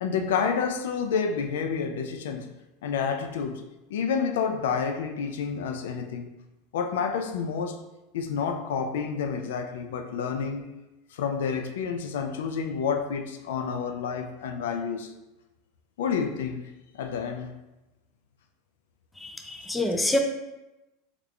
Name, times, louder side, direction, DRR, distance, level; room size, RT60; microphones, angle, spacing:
voice 1, 0.0-2.5 2.8-6.3 6.7-7.8 8.1-10.7 11.1-15.1 16.0-17.5 19.4-19.6 20.0-20.2, left 6 dB, 85° left, 0.3 m, -29 dB
voice 2, 19.2-20.2, left 1 dB, 5° left, 0.3 m, -26 dB
3.4 x 2.4 x 3.2 m
supercardioid pair, 125°, 0 cm